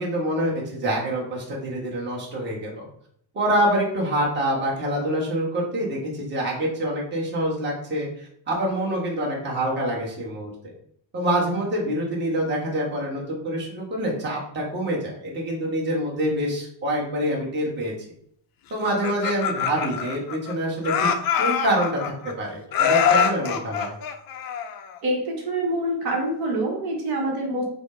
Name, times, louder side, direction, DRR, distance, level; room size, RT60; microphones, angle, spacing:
voice 1, 0.0-2.9 3.3-10.7 11.1-17.9 18.7-21.1 21.4-23.9, right 1 dB, 25° right, -3 dB, 1.1 m, -26 dB
Laughter, 18.8-20.5 20.8-22.3 22.7-25.0, left 7 dB, 50° left, 0.5 m, -24 dB
voice 2, 25.0-27.6, right 1 dB, 55° right, -1 dB, 1.1 m, -26 dB
5.0 x 2.1 x 4.8 m, 0.66 s
cardioid pair, 170°, 45 cm